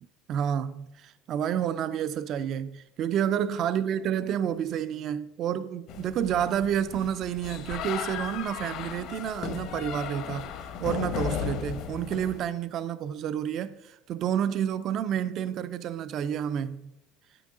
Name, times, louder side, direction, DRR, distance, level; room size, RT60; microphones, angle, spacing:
voice 1, 0.3-10.5 10.8-16.9, right 9 dB, 40° right, 0.3 m, -29 dB
sound 1, 5.9-12.4, left 8 dB, 55° left, 0.8 m, -35 dB
9.2 x 8.8 x 3.7 m
cardioid pair, 150°, 0 cm